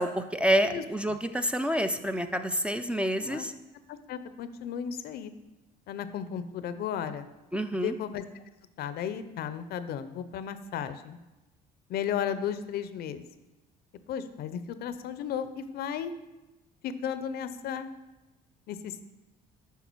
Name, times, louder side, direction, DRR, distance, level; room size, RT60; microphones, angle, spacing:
voice 1, 0.0-3.5 7.5-7.9, equal, 5° right, 8 dB, 0.4 m, -28 dB
voice 2, 0.7-1.2 3.2-3.5 3.9-5.3 5.9-7.3 7.7-8.4 8.8-11.2 11.9-13.2 14.1-16.1 16.8-17.9 18.7-19.0, left 8 dB, 70° left, 12 dB, 0.6 m, -34 dB
8.2 x 5.5 x 4.6 m, 1.0 s
cardioid pair, 110°, 17 cm